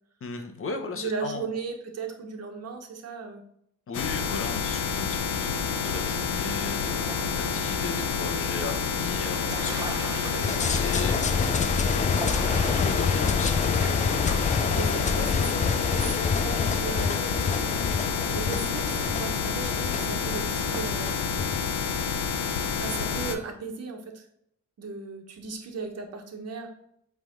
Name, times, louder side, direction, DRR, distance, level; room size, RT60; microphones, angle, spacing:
voice 1, 0.2-1.5 3.9-15.6, left 4 dB, 45° left, 6 dB, 1.2 m, -37 dB
voice 2, 0.9-3.4 14.7-17.4 18.3-21.4 22.7-24.2 24.8-26.7, right 5 dB, 55° right, 3 dB, 1.4 m, -36 dB
sound 1, 3.9-23.4, left 6 dB, 90° left, 0.8 m, -29 dB
sound 2, 5.5-23.2, right 3 dB, 10° right, 1.1 m, -41 dB
sound 3, 10.4-21.6, left 5 dB, 25° left, 0.5 m, -28 dB
7.9 x 3.6 x 3.8 m, 0.73 s
cardioid pair, 90°, 30 cm